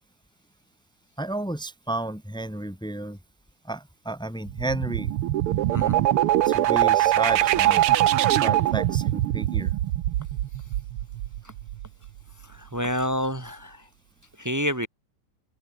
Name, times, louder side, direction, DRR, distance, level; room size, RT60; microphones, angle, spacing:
voice 1, 1.2-3.2 3.6-5.1 6.4-7.8 8.4-9.7, right 2 dB, ahead, 2.5 m, -32 dB
sound 1, 4.5-12.1, right 13 dB, 90° right, 1.8 m, -23 dB
voice 2, 5.7-6.0 12.4-13.9 14.4-14.9, equal, 20° right, 0.4 m, -28 dB
omnidirectional pair, 2.4 m